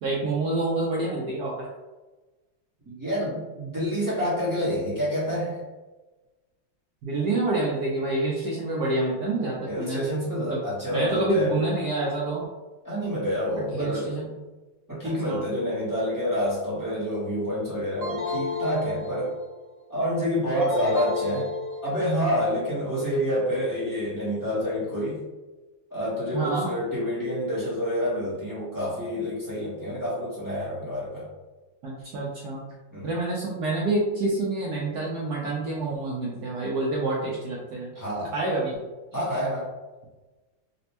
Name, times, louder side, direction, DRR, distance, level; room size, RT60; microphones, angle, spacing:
voice 1, 0.0-1.7 7.0-10.0 10.4-10.6 10.9-12.4 13.7-14.3 15.0-15.5 26.3-26.7 31.8-32.6 33.0-37.9 38.3-38.8, right 2 dB, 75° right, -4 dB, 0.9 m, -27 dB
voice 2, 2.8-5.6 9.7-11.6 12.8-14.1 14.9-19.4 19.9-21.5 21.8-25.2 25.9-31.3 32.9-33.1 37.9-38.3 39.1-39.7, equal, 20° right, -10 dB, 0.5 m, -28 dB
sound 1, 18.0-19.6 20.6-22.2, left 3 dB, 90° right, 0.3 m, -31 dB
4.1 x 2.1 x 2.8 m, 1.2 s
omnidirectional pair, 2.3 m